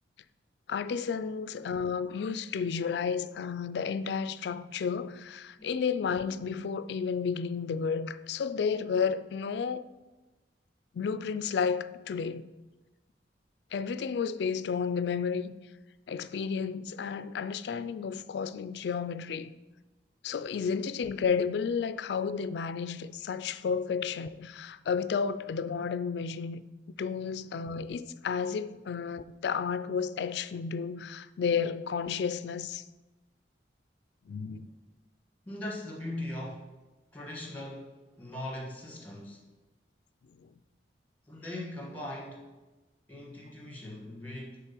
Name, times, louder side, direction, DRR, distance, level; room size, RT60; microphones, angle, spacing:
voice 1, 0.7-9.9 10.9-12.4 13.7-15.6 16.1-19.5 20.2-26.6 27.0-32.8 34.3-34.7 40.4-40.5, left 6 dB, 65° left, 0.3 m, -32 dB
voice 2, 35.4-36.7 37.1-39.5 41.3-42.5 43.1-44.6, left 1 dB, 10° left, 1.5 m, -40 dB
8.0 x 3.6 x 5.9 m
head